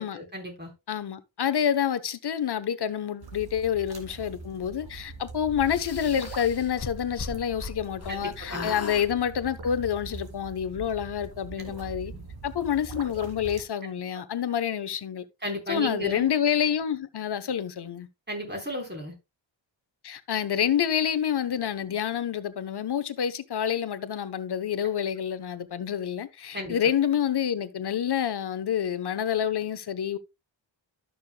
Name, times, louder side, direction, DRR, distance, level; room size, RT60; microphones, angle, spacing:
voice 1, 0.0-0.7 8.1-8.2 8.5-8.7 11.6-11.7 12.1-12.2 13.8-13.9 15.4-16.3 18.3-19.1 26.5-26.8, equal, 20° right, 4.2 m, -34 dB
voice 2, 0.9-12.1 12.4-15.2 15.7-18.1 20.0-30.2, left 9 dB, 55° left, 1.0 m, -28 dB
sound 1, 3.2-13.6, right 4 dB, 50° right, 2.5 m, -42 dB
sound 2, 5.7-8.2 8.4-9.1, left 4 dB, 35° left, 1.1 m, -38 dB
12.5 x 6.6 x 2.2 m
cardioid pair, 80°, 46 cm